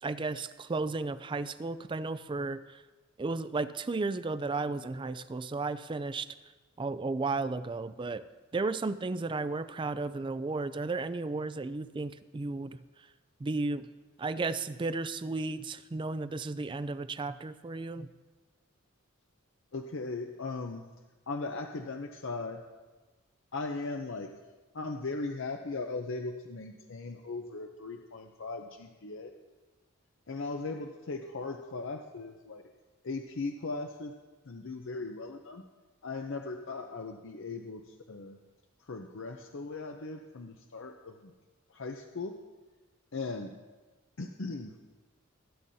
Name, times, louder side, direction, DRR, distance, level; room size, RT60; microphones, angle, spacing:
voice 1, 0.0-2.8 3.2-6.3 6.8-8.2 8.5-12.8 13.4-13.9 14.2-18.1, right 3 dB, 25° right, 14 dB, 0.3 m, -34 dB
voice 2, 19.7-20.9 21.3-22.6 23.5-24.3 24.7-29.3 30.3-32.6 33.0-34.1 34.5-35.6 36.0-38.4 38.9-41.3 41.7-42.4 43.1-43.6 44.2-44.7, left 3 dB, 60° left, 4 dB, 0.6 m, -38 dB
20.5 x 10.0 x 2.7 m, 1.3 s
head